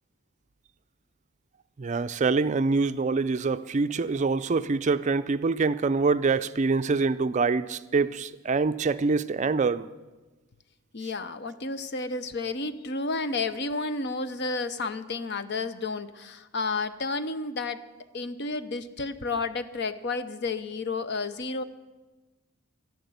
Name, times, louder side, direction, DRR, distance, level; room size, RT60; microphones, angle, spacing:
voice 1, 1.8-9.9, right 4 dB, 35° right, 0.4 m, -25 dB
voice 2, 10.9-17.8 18.1-21.6, left 3 dB, 55° left, 0.7 m, -31 dB
12.5 x 11.0 x 7.9 m
head